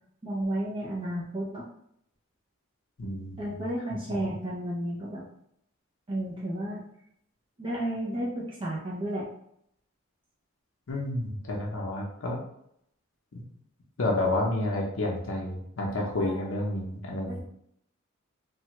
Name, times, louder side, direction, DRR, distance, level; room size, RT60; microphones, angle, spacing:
voice 1, 0.2-1.7 3.4-5.2 6.1-6.8 7.6-9.3 16.2-16.5 17.3-17.4, right 1 dB, 25° right, -5 dB, 0.5 m, -32 dB
voice 2, 3.0-3.5 4.1-4.2 10.9-12.4 13.3-13.4 14.0-17.4, left 1 dB, 70° left, -1 dB, 0.6 m, -30 dB
3.2 x 2.2 x 2.9 m, 0.73 s
head